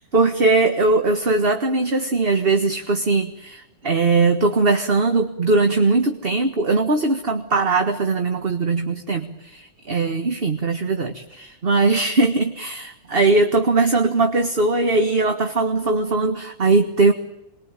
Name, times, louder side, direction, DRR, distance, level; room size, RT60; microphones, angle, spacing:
voice 1, 0.1-17.1, right 3 dB, 30° right, 6 dB, 1.7 m, -20 dB
28.5 x 22.5 x 9.1 m, 0.87 s
omnidirectional pair, 2.1 m